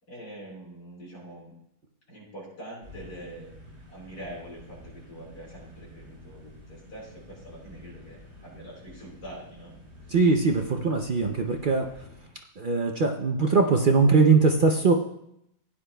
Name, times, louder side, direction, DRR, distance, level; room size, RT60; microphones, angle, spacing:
voice 1, 0.1-1.5 2.1-3.5 3.9-9.7 10.0-10.2, right 1 dB, 75° left, -5 dB, 5.0 m, -44 dB
sound 1, 2.8-12.3, left 1 dB, 40° right, 3.5 m, -49 dB
voice 2, 10.1-12.1 12.6-14.9, right 4 dB, 75° right, 3 dB, 0.4 m, -21 dB
16.0 x 9.9 x 2.2 m, 0.76 s
omnidirectional pair, 1.7 m